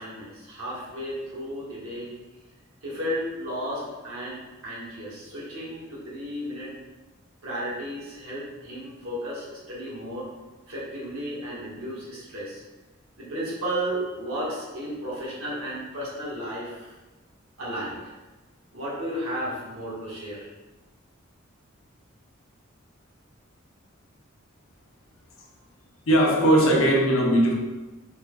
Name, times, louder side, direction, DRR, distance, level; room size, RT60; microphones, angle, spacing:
voice 1, 0.0-2.1 2.8-6.7 7.4-10.3 10.7-12.6 13.2-16.9 17.6-18.1 18.7-20.5, equal, 85° right, -6 dB, 1.5 m, -33 dB
voice 2, 26.1-27.5, right 1 dB, 75° left, -2 dB, 0.8 m, -19 dB
4.3 x 2.2 x 3.7 m, 1.1 s
head